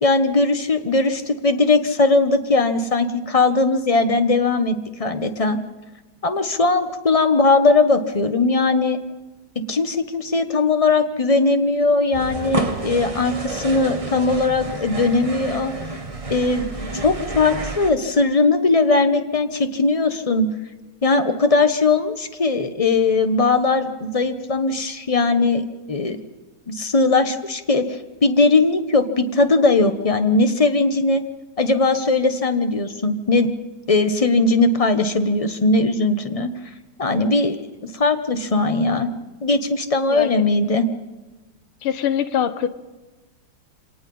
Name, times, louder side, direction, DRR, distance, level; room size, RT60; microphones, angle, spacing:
voice 1, 0.0-5.6 6.2-9.0 9.7-15.7 16.3-20.5 21.0-26.2 26.7-27.9 28.2-31.2 31.6-33.5 33.9-36.5 37.0-37.6 37.8-39.1 39.4-40.9, left 3 dB, 25° left, 8 dB, 0.8 m, -19 dB
sound 1, 12.1-17.9, right 2 dB, 20° right, 1.2 m, -30 dB
voice 2, 41.8-42.7, left 9 dB, 80° left, 12 dB, 1.9 m, -22 dB
26.0 x 19.0 x 5.5 m, 1.2 s
omnidirectional pair, 2.3 m